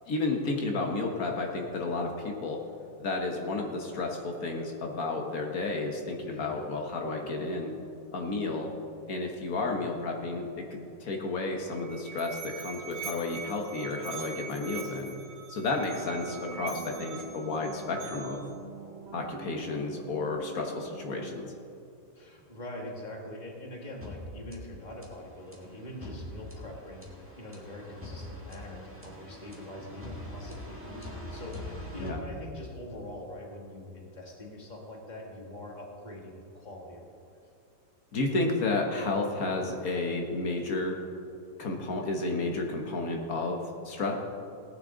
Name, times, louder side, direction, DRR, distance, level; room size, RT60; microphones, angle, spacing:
voice 1, 0.1-2.6 3.0-7.7 8.1-8.7 9.1-15.1 15.5-18.4 19.1-21.5 32.0-32.2 38.1-41.0 41.6-44.1, left 3 dB, 75° left, 2 dB, 1.7 m, -32 dB
voice 2, 6.3-6.7 22.1-37.4, left 1 dB, 30° left, -1 dB, 1.9 m, -44 dB
Musical instrument, 11.7-18.6, right 6 dB, 70° right, 1.5 m, -43 dB
sound 1, 15.9-21.8, right 5 dB, 50° right, 1.2 m, -46 dB
sound 2, 24.0-32.9, left 1 dB, 10° right, 1.6 m, -43 dB
17.5 x 9.8 x 3.9 m, 2.5 s
omnidirectional pair, 1.5 m